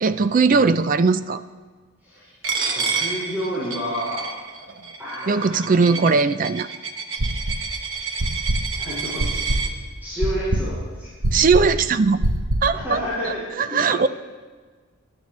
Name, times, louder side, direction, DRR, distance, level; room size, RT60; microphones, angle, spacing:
voice 1, 0.0-1.4 5.2-6.7 11.3-12.2 12.6-14.1, right 4 dB, 35° right, 13 dB, 0.4 m, -19 dB
Coin (dropping), 2.4-9.7, right 5 dB, 60° right, 1.2 m, -29 dB
voice 2, 2.7-4.2 5.0-6.1 8.7-9.7 10.0-11.1 12.7-14.1, equal, 10° right, -11 dB, 5.2 m, -30 dB
sound 1, 7.2-7.8 8.2-12.8, right 1 dB, 90° right, 1.1 m, -24 dB
24.5 x 12.0 x 3.2 m, 1.5 s
head